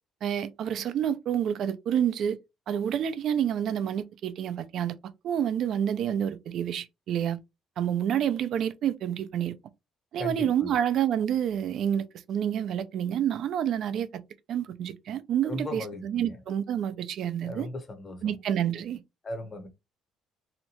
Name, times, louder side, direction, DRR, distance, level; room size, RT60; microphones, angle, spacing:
voice 1, 0.2-2.4 2.7-5.0 5.2-7.4 7.8-9.6 10.1-14.2 14.5-17.7 18.2-19.0, right 9 dB, 60° right, 0.4 m, -28 dB
voice 2, 10.2-10.7 15.4-16.4 17.4-18.4 19.2-19.7, left 1 dB, 30° left, 0.7 m, -37 dB
2.8 x 2.1 x 2.8 m
cardioid pair, 115°, 0 cm